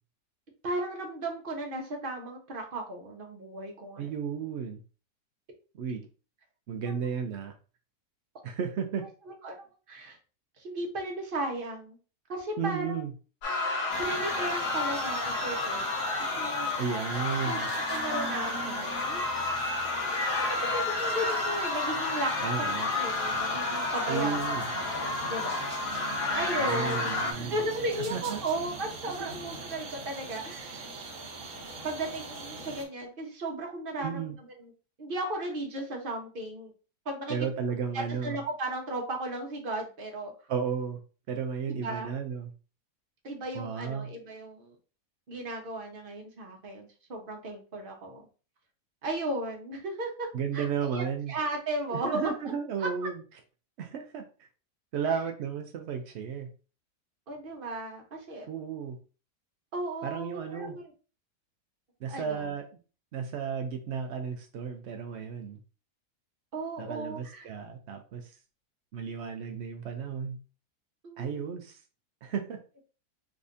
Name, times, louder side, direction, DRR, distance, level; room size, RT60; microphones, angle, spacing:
voice 1, 0.6-4.1 6.9-7.0 9.3-10.2 10.6-12.0 12.3-13.0 14.0-15.9 16.4-16.7 17.4-17.6 17.9-19.2 20.0-22.3 22.6-24.4 24.7-30.9 31.8-34.7 35.0-36.7 37.0-37.4 37.9-40.3 41.7-42.1 43.2-44.7 45.3-48.2 49.0-50.3 50.5-52.3 52.8-53.1 55.0-55.2 57.3-58.5 59.7-60.9 62.1-62.5 66.5-67.5 71.0-71.6, right 1 dB, 40° right, 2 dB, 0.9 m, -35 dB
voice 2, 4.0-4.8 5.8-6.0 6.7-7.5 8.4-9.0 12.6-13.1 16.8-17.7 22.4-22.9 24.1-24.6 26.6-27.6 28.1-28.4 29.0-29.3 34.0-34.3 37.3-38.4 40.5-41.0 41.3-42.5 43.5-44.1 50.3-51.3 51.9-53.2 53.8-54.2 54.9-56.5 58.5-59.0 60.0-60.8 62.0-62.6 63.1-65.6 66.8-68.3 68.9-70.4 71.2-71.8 72.2-72.6, right 6 dB, 85° right, 5 dB, 0.6 m, -33 dB
sound 1, 13.4-27.3, left 3 dB, 80° left, 1.4 m, -31 dB
sound 2, 13.9-32.8, right 3 dB, 60° right, 1.2 m, -42 dB
3.6 x 3.2 x 2.6 m, 0.35 s
omnidirectional pair, 1.7 m